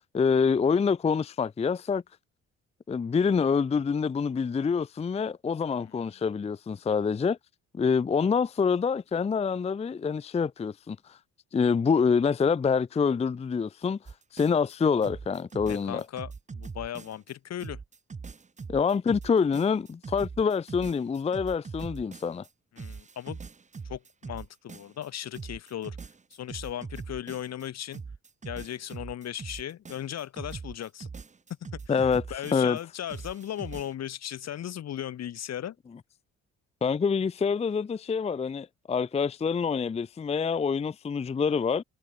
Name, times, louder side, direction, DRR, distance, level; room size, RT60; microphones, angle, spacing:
voice 1, 0.1-2.0 2.9-7.4 7.7-11.2 11.5-14.0 14.3-16.0 18.7-22.4 31.9-32.2 32.5-32.8 36.8-41.8, left 5 dB, 20° left, 0.5 m, -26 dB
sound 1, 14.1-14.7 15.0-17.3 17.6-22.5 22.8-25.1 25.3-27.7 27.9-32.8 33.1-33.9, right 5 dB, 25° right, 1.0 m, -42 dB
voice 2, 15.7-17.8 22.7-23.4 23.9-26.0 26.3-28.0 28.4-31.1 31.7-35.8, left 11 dB, 60° left, 1.3 m, -37 dB
cardioid pair, 90°, 30 cm